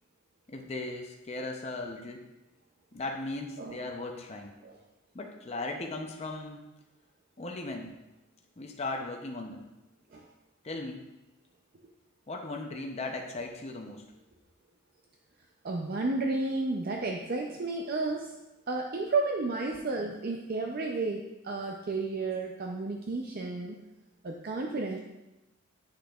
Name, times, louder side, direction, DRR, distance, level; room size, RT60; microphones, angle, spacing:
voice 1, 0.5-2.2 2.9-4.5 5.1-6.6 7.4-7.9 8.6-9.7 10.6-11.0 12.3-14.0, left 2 dB, 30° left, 2 dB, 0.6 m, -37 dB
voice 2, 15.6-18.3 18.7-23.8 24.2-25.0, right 3 dB, 45° right, 1 dB, 0.5 m, -32 dB
8.1 x 6.4 x 2.4 m, 0.99 s
head